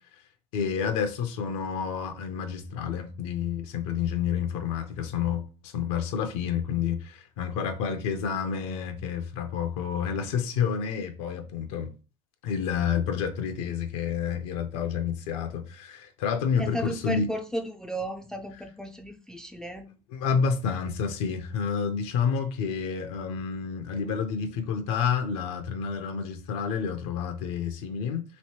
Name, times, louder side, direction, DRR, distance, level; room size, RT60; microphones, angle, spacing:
voice 1, 0.5-11.9 12.4-17.3 20.1-28.2, left 7 dB, 75° left, 0.6 m, -29 dB
voice 2, 16.6-19.9, equal, 5° left, 0.4 m, -34 dB
3.1 x 2.7 x 2.9 m
supercardioid pair, 90°, 16 cm